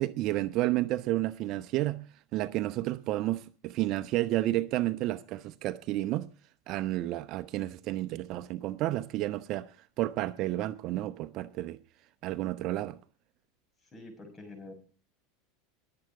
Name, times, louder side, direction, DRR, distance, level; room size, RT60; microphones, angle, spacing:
voice 1, 0.0-2.0 2.3-6.3 6.7-9.7 10.0-11.8 12.2-13.0, right 16 dB, 50° right, 0.8 m, -31 dB
voice 2, 13.8-14.7, left 2 dB, 20° left, 5.9 m, -47 dB
22.0 x 7.8 x 4.8 m
supercardioid pair, 120°, 0 cm